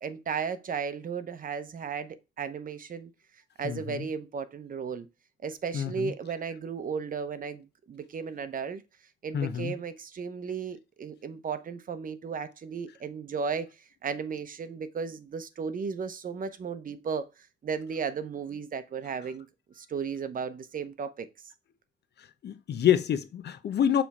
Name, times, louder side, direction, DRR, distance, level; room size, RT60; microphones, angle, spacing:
voice 1, 0.0-3.1 3.6-5.1 5.4-8.8 9.2-13.7 14.0-19.5 19.8-21.3, right 6 dB, 45° right, 0.8 m, -35 dB
voice 2, 3.6-4.0 5.7-6.1 9.3-9.7 22.4-24.0, left 9 dB, 55° left, 0.8 m, -27 dB
7.0 x 3.4 x 4.2 m
cardioid pair, 90°, 20 cm